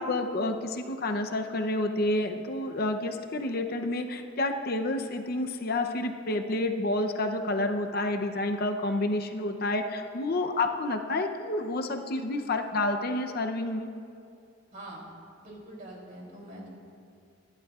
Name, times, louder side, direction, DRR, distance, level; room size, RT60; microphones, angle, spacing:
voice 1, 0.0-13.9, left 2 dB, 55° left, 5 dB, 0.7 m, -29 dB
voice 2, 14.7-15.0 15.4-16.7, right 1 dB, 45° right, -3 dB, 3.3 m, -44 dB
25.0 x 11.5 x 2.4 m, 2.4 s
head